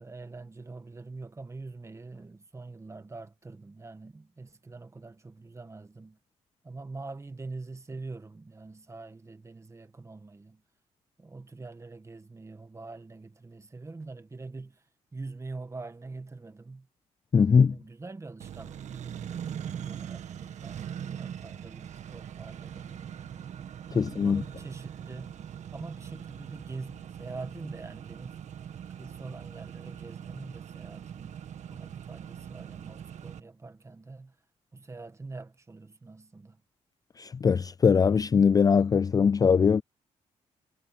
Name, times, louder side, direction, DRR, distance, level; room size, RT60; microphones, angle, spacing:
voice 1, 0.0-6.2 6.6-10.6 11.2-14.8 15.1-16.9 17.7-23.5 23.9-25.4 25.7-28.4 29.0-31.4 31.7-34.4 34.7-36.6, right 3 dB, 25° right, 1.8 m, -44 dB
voice 2, 17.3-17.8 23.9-24.4 37.2-39.8, left 6 dB, 30° left, 0.3 m, -21 dB
Accelerating revving vroom, 18.4-33.4, right 9 dB, 70° right, 1.7 m, -41 dB
cardioid pair, 90°, 12 cm